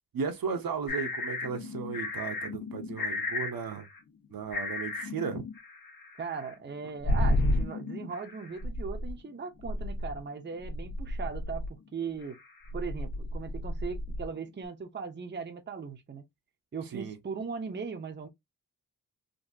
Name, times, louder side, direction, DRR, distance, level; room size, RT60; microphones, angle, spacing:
voice 1, 0.1-3.9 4.3-5.4 16.9-17.2, right 6 dB, 70° right, 0.8 m, -35 dB
sound 1, 0.9-4.3 4.5-10.2 10.6-11.9 12.2-14.3, left 1 dB, 70° left, 1.5 m, -33 dB
voice 2, 6.2-12.4 12.7-16.2 16.7-18.3, right 5 dB, 30° right, 0.6 m, -38 dB
3.8 x 2.7 x 2.6 m
wide cardioid pair, 180°, 36 cm